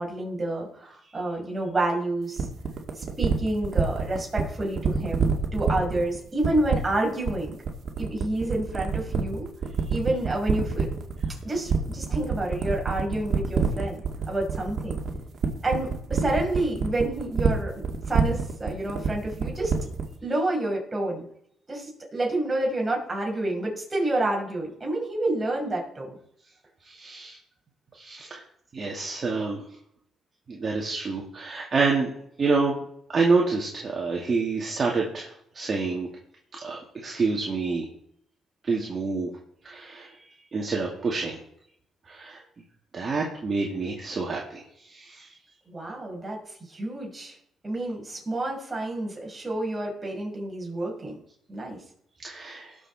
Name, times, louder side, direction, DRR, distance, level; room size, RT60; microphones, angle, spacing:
voice 1, 0.0-2.5 3.0-7.6 8.0-9.5 9.9-10.9 11.4-14.0 14.3-15.0 15.6-19.7 20.2-21.2 21.7-26.2 45.7-47.4 47.6-51.2 51.5-51.8, right 2 dB, 25° right, -1 dB, 6.0 m, -29 dB
sound 1, 2.4-20.1, right 5 dB, 55° right, 2.3 m, -26 dB
voice 2, 26.8-27.4 27.9-28.4 28.7-29.6 30.5-32.1 32.4-32.7 33.1-36.1 36.5-37.9 38.6-39.3 39.6-40.1 40.5-41.4 42.1-42.4 42.9-45.3 52.2-52.8, right 4 dB, 40° right, -2 dB, 2.5 m, -27 dB
19.0 x 7.2 x 4.4 m, 0.70 s
cardioid pair, 90°, 0 cm